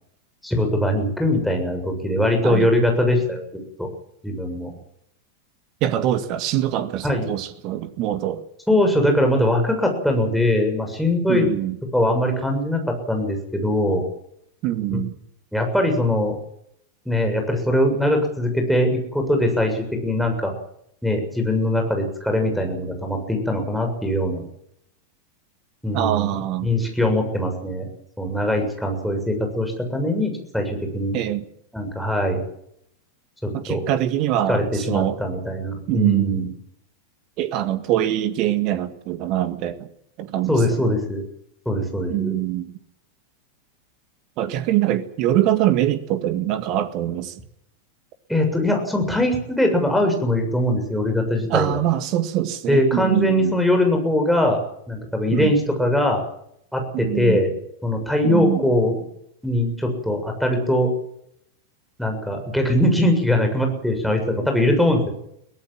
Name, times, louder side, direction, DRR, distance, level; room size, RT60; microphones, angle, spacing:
voice 1, 0.4-3.4 3.8-3.9 4.2-4.7 7.0-7.3 8.7-11.5 11.9-14.0 14.9-15.0 15.5-16.4 17.1-20.5 21.0-24.4 25.8-26.3 26.6-27.8 28.2-31.2 31.7-32.4 33.4-33.8 34.5-36.5 40.5-41.2 41.7-42.3 48.3-51.8 52.7-54.6 54.9-56.2 56.7-57.5 57.8-59.0 59.4-60.9 62.0-65.1, left 1 dB, ahead, 2 dB, 7.1 m, -21 dB
voice 2, 5.8-8.4 11.3-11.8 14.6-15.1 25.9-26.7 31.1-31.4 33.5-35.2 35.9-36.5 37.4-39.9 40.2-40.9 42.1-42.8 44.4-47.3 51.5-53.5 55.3-55.5 56.9-57.4 58.2-58.7, right 12 dB, 40° right, 12 dB, 1.8 m, -23 dB
23.5 x 17.5 x 7.5 m, 0.74 s
figure-of-eight pair, 90°, 0 cm